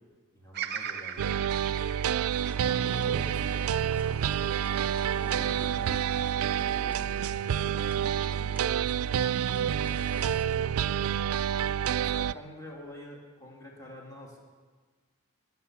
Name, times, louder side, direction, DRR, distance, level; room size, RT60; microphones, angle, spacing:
voice 1, 0.3-1.4 2.6-4.0 11.8-14.4, left 1 dB, 15° left, -2 dB, 2.6 m, -46 dB
Bird vocalization bird call bird song, 0.5-4.8 5.3-6.1, right 8 dB, 50° right, 0.7 m, -40 dB
sound 1, 1.2-12.3, right 9 dB, 80° right, 0.3 m, -28 dB
sound 2, 2.3-10.4, right 2 dB, 10° right, 0.9 m, -48 dB
voice 2, 5.2-8.9 9.2-11.2, equal, 40° left, -1 dB, 2.2 m, -49 dB
20.5 x 8.0 x 7.3 m, 1.4 s
head